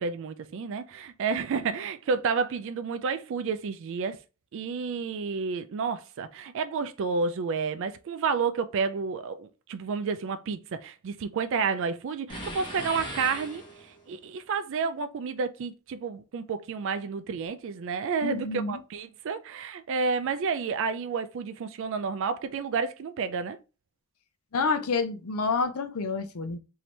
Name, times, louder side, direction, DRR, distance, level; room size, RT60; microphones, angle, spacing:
voice 1, 0.0-4.2 4.5-13.6 14.1-23.6, right 5 dB, 60° right, 0.4 m, -30 dB
sound 1, 12.3-14.1, equal, 20° left, 1.1 m, -38 dB
voice 2, 18.2-18.8 24.5-26.6, left 4 dB, 90° left, 0.6 m, -28 dB
4.3 x 2.8 x 3.2 m
head